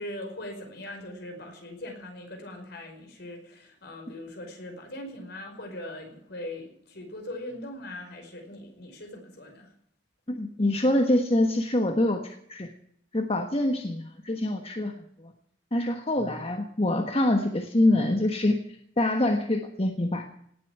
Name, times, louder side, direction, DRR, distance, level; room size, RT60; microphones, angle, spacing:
voice 1, 0.0-9.7, left 1 dB, 60° left, 3 dB, 5.3 m, -40 dB
voice 2, 10.3-12.7 13.1-14.9 15.2-15.3 15.7-18.6 19.0-20.3, left 1 dB, 30° left, 4 dB, 1.3 m, -25 dB
18.5 x 8.4 x 9.2 m, 0.69 s
head